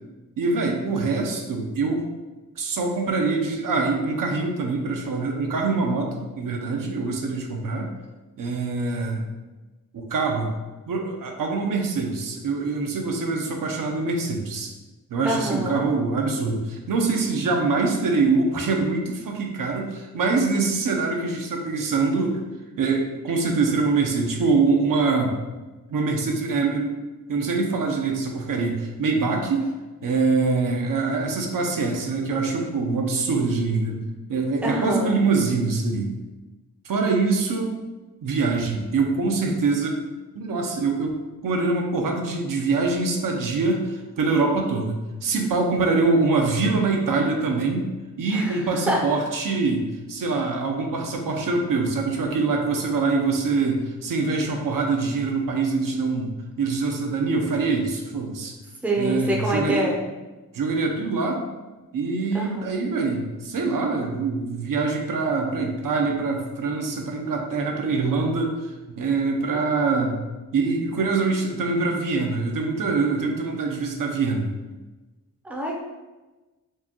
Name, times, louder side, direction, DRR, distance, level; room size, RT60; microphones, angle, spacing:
voice 1, 0.4-2.0 2.6-7.9 8.4-9.3 9.9-10.6 10.9-14.7 15.1-22.4 22.8-25.4 25.9-27.0 27.3-29.7 30.0-34.0 34.3-36.1 36.8-37.8 38.2-40.0 40.3-47.8 48.2-58.5 59.0-59.9 60.5-61.4 61.9-68.5 68.9-70.2 70.5-74.5, right 3 dB, 70° right, 1 dB, 0.6 m, -24 dB
voice 2, 15.2-15.9 34.6-35.2 48.3-49.0 58.8-60.0 62.3-62.7 75.4-75.8, right 1 dB, 5° right, -1 dB, 0.5 m, -26 dB
4.6 x 2.2 x 2.9 m, 1.2 s
wide cardioid pair, 115°, 35 cm